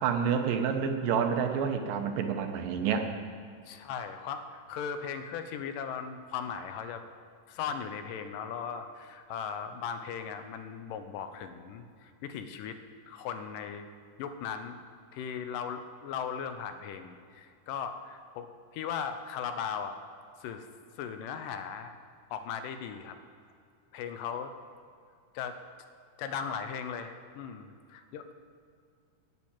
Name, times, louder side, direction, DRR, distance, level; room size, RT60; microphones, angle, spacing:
voice 1, 0.0-3.1, right 7 dB, 85° right, 6 dB, 2.6 m, -28 dB
voice 2, 3.7-7.0 7.5-12.8 13.1-13.9 14.2-14.8 15.1-20.0 20.4-20.7 21.0-21.9 22.3-23.2 23.9-24.5 25.3-25.6 26.2-28.3, left 7 dB, 80° left, 8 dB, 2.3 m, -38 dB
9.6 x 8.5 x 8.7 m, 2.2 s
omnidirectional pair, 3.9 m